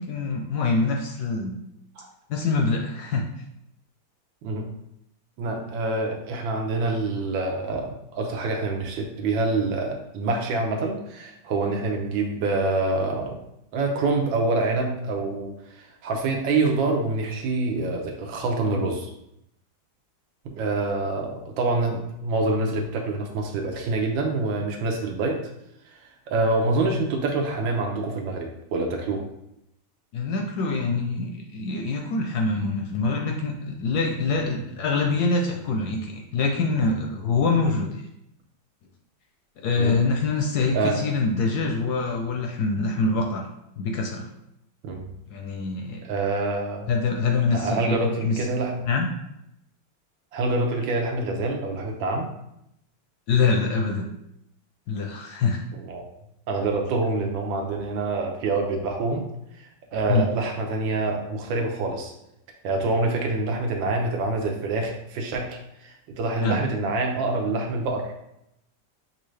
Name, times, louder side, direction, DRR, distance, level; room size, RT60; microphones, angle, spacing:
voice 1, 0.0-1.6 2.3-3.2 30.1-38.0 39.6-43.5 43.8-44.3 45.3-46.0 46.9-48.5 48.9-49.1 53.3-54.1 54.9-55.6 60.1-60.3 66.4-66.6, left 4 dB, 70° left, 2 dB, 0.9 m, -25 dB
voice 2, 5.4-13.4 13.7-19.1 20.4-25.4 25.8-26.0 26.3-29.2 39.8-40.0 40.7-41.0 44.8-45.1 46.0-46.9 47.5-48.8 50.3-52.3 55.7-56.0 56.5-59.3 59.6-62.1 62.6-68.1, right 3 dB, 85° right, 2 dB, 1.5 m, -26 dB
6.2 x 2.6 x 3.2 m, 0.81 s
omnidirectional pair, 2.0 m